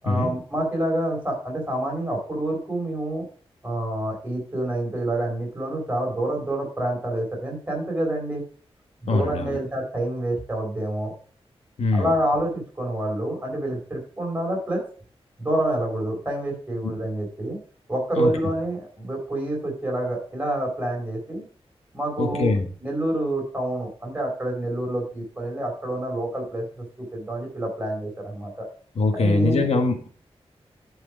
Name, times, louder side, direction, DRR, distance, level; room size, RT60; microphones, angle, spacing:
voice 1, 0.0-3.3 3.6-8.4 9.0-11.1 11.9-14.8 15.4-17.6 17.9-21.4 21.9-22.5 22.8-28.7 29.1-29.6, right 1 dB, 15° right, -1 dB, 4.8 m, -27 dB
voice 2, 9.1-9.6 11.8-12.1 18.2-18.3 22.2-22.6 28.9-30.1, left 3 dB, 90° left, 5 dB, 1.5 m, -22 dB
11.5 x 4.8 x 5.0 m, 0.43 s
wide cardioid pair, 135°, 11 cm